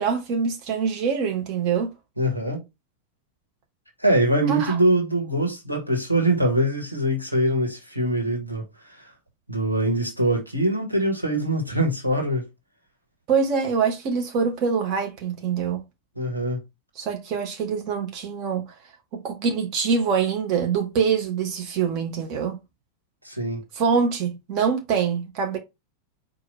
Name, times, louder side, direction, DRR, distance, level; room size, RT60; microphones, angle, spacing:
voice 1, 0.0-1.9 4.5-4.8 13.3-15.8 17.0-18.7 19.1-22.6 23.7-25.6, right 6 dB, 40° right, 1.0 m, -24 dB
voice 2, 2.2-2.6 4.0-9.1 9.5-12.4 16.1-16.6 23.2-23.6, right 1 dB, 90° right, 1.4 m, -23 dB
4.7 x 2.5 x 4.1 m
figure-of-eight pair, 90°, 0 cm